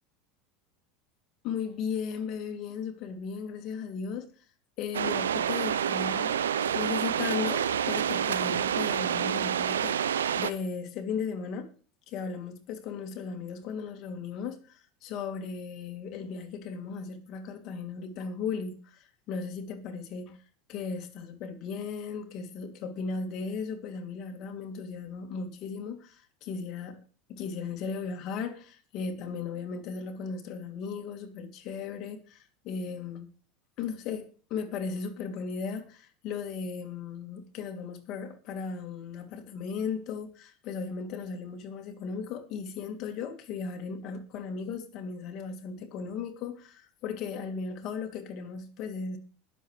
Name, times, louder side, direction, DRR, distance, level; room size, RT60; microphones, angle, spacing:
voice 1, 1.4-4.3 4.8-11.7 12.1-20.4 20.7-27.0 27.3-33.3 33.8-49.2, left 5 dB, 55° left, 2.6 m, -36 dB
sound 1, 4.9-10.5, right 8 dB, 85° right, 0.6 m, -28 dB
21.0 x 7.4 x 3.2 m
hypercardioid pair, 85°, 0 cm